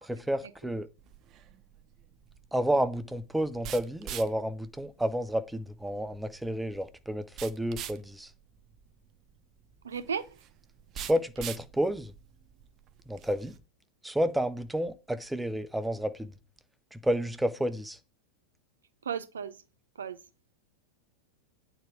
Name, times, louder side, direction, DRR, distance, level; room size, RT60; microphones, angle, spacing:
voice 1, 0.0-0.9 2.5-8.3 11.0-12.1 13.1-13.5 14.0-16.3 16.9-18.0, right 1 dB, 5° right, 0.8 m, -30 dB
sound 1, 1.0-13.6, right 9 dB, 35° right, 0.9 m, -46 dB
voice 2, 9.8-10.4 19.0-19.6 20.0-20.2, right 7 dB, 70° right, 0.9 m, -35 dB
9.2 x 4.7 x 6.6 m
figure-of-eight pair, 90°, 0 cm